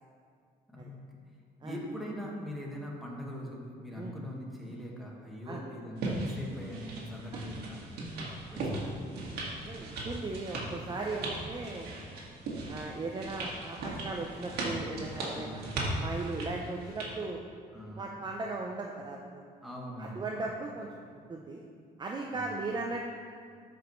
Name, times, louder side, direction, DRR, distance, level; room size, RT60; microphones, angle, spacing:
voice 1, 0.7-1.0 1.6-7.9 8.5-9.0 15.3-15.6 17.7-18.2 19.6-20.5 22.3-22.7, equal, ahead, -3 dB, 1.6 m, -42 dB
sound 1, 6.0-17.1, right 2 dB, 70° right, 1.8 m, -38 dB
voice 2, 8.4-8.8 9.6-12.0 12.7-15.6 16.0-17.4 18.0-19.4 20.0-21.6 22.0-23.0, right 3 dB, 25° right, 0 dB, 0.6 m, -37 dB
13.0 x 5.2 x 3.1 m, 2.2 s
cardioid pair, 110°, 17 cm